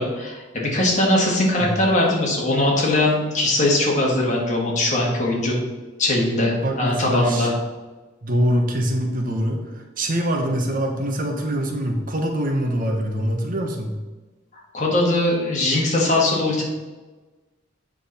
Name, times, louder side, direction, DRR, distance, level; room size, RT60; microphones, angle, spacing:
voice 1, 0.0-5.5 6.0-7.5 14.7-16.6, left 1 dB, 40° left, -2 dB, 1.9 m, -20 dB
voice 2, 6.6-7.5 8.2-14.0, equal, 45° right, 3 dB, 1.0 m, -24 dB
8.0 x 6.0 x 4.2 m, 1.2 s
head